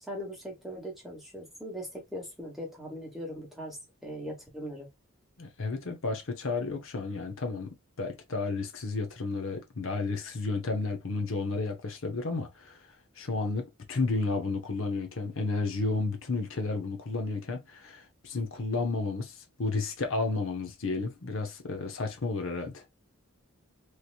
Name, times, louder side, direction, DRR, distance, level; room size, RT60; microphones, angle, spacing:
voice 1, 0.1-3.8 4.0-4.9, equal, ahead, 1.2 m, -40 dB
voice 2, 5.4-7.7 8.0-12.8 13.2-22.8, left 3 dB, 65° left, 0.7 m, -32 dB
3.2 x 2.8 x 2.4 m
head